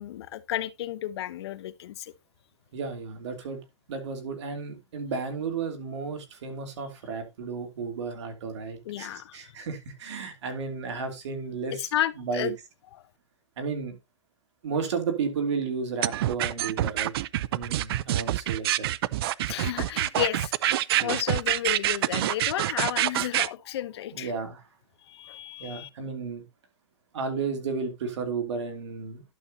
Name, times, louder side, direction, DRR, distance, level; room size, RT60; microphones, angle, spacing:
voice 1, 0.0-2.1 8.8-9.4 11.7-12.6 19.4-24.3 25.1-25.9, left 12 dB, 65° left, 0.7 m, -32 dB
voice 2, 2.7-3.6 3.9-11.8 12.2-12.5 13.6-14.0 14.6-17.1 17.5-18.9 21.0-21.2 24.1-24.6 25.6-26.4 27.1-29.2, right 5 dB, 75° right, 2.8 m, -33 dB
sound 1, 16.0-23.5, right 14 dB, 60° right, 0.4 m, -26 dB
11.5 x 6.9 x 2.7 m
hypercardioid pair, 150°, 15 cm